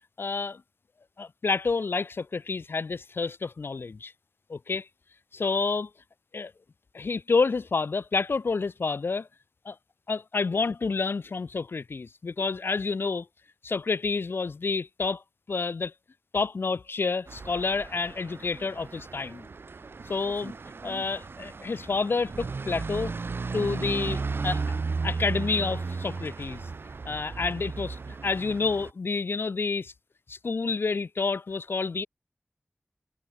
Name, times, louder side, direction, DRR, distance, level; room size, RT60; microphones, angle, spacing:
voice 1, 0.2-0.6 1.2-4.1 4.5-4.9 5.3-5.9 6.3-6.5 6.9-9.3 9.7-9.8 10.1-13.3 13.6-15.2 15.5-15.9 16.3-19.5 20.1-20.5 20.8-23.1 23.5-24.6 25.0-26.7 27.0-29.9 30.3-32.1, left 4 dB, 85° left, 0.5 m, -29 dB
sound 1, 17.3-28.9, right 4 dB, 80° right, 0.4 m, -35 dB
wide cardioid pair, 55°, 4 cm